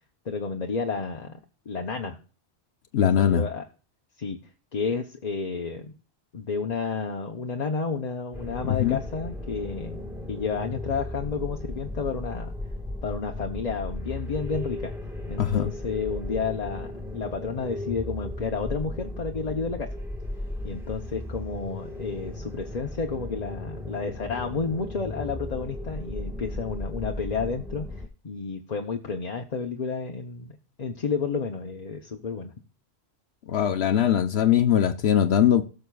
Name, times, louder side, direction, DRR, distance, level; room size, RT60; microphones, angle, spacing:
voice 1, 0.2-1.4 1.7-2.2 3.0-3.6 4.2-4.4 4.7-5.9 6.3-12.5 13.0-14.9 15.3-19.9 20.6-32.5, left 5 dB, 40° left, 0.8 m, -31 dB
voice 2, 2.9-3.5 8.6-9.0 15.4-15.7 33.5-35.6, left 9 dB, 75° left, 1.0 m, -21 dB
sound 1, 8.3-28.1, left 1 dB, ahead, 1.7 m, -36 dB
17.5 x 6.6 x 2.3 m
omnidirectional pair, 1.1 m